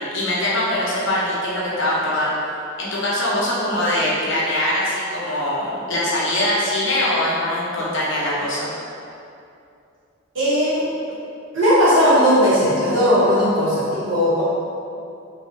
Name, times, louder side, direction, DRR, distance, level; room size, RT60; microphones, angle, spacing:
voice 1, 0.0-2.3 2.8-8.7, left 1 dB, 60° left, -6 dB, 0.8 m, -22 dB
voice 2, 10.3-10.8 11.5-14.4, equal, 60° right, -10 dB, 1.2 m, -17 dB
3.2 x 2.4 x 3.7 m, 2.6 s
head